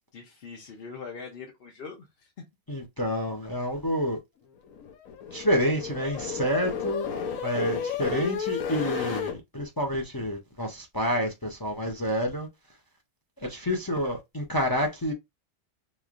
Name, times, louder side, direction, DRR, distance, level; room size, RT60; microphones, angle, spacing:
voice 1, 0.1-2.3, left 5 dB, 50° left, 0.9 m, -42 dB
voice 2, 2.7-4.2 5.3-7.1 7.4-12.5 13.4-15.1, equal, 30° left, 0.4 m, -28 dB
sound 1, 4.6-9.3, left 7 dB, 85° left, 1.1 m, -33 dB
3.6 x 3.1 x 2.5 m
omnidirectional pair, 1.4 m